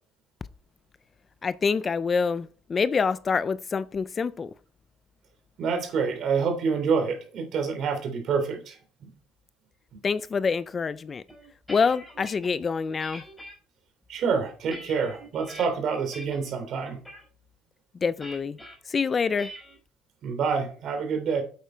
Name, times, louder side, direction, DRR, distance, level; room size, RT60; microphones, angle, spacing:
voice 1, 1.4-4.5 10.0-11.2 11.7-13.2 18.0-18.6 18.9-19.5, left 5 dB, 25° left, 0.4 m, -26 dB
voice 2, 5.6-9.1 14.1-17.0 20.2-21.4, right 5 dB, 50° right, 3.2 m, -27 dB
sound 1, 11.3-12.5 13.0-13.5 14.1-15.7 16.1-16.5 16.8-17.2 18.2-18.7 19.4-19.8, equal, ahead, 5.4 m, -43 dB
9.4 x 8.1 x 4.5 m
cardioid pair, 150°, 0 cm